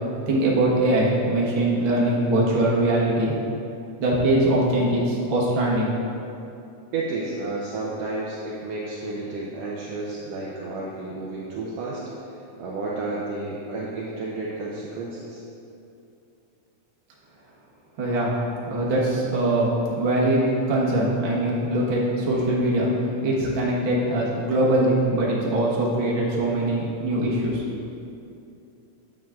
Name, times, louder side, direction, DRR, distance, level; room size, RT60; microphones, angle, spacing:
voice 1, 0.3-3.3 4.0-5.9 18.0-18.3 18.7-19.7 20.0-27.6, right 1 dB, 55° right, -5 dB, 1.6 m, -22 dB
voice 2, 6.9-15.4, right 2 dB, 75° right, -5 dB, 1.5 m, -31 dB
9.2 x 7.4 x 2.4 m, 2.7 s
omnidirectional pair, 3.7 m